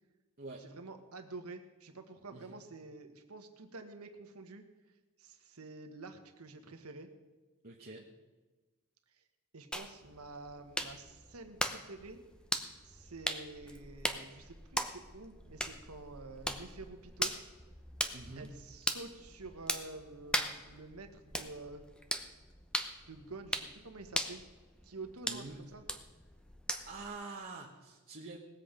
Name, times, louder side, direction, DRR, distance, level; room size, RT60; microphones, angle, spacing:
voice 1, 0.6-4.7 5.2-7.1 9.1-9.2 9.5-12.2 12.8-17.4 18.3-21.8 23.1-24.4 24.8-25.8, right 3 dB, 85° right, 6 dB, 1.4 m, -49 dB
voice 2, 7.6-8.1 18.1-18.5 25.3-25.6 26.9-28.4, right 3 dB, 45° right, -1 dB, 1.2 m, -46 dB
sound 1, 9.7-27.1, equal, 5° left, 0.8 m, -40 dB
19.5 x 7.8 x 5.1 m, 1.2 s
head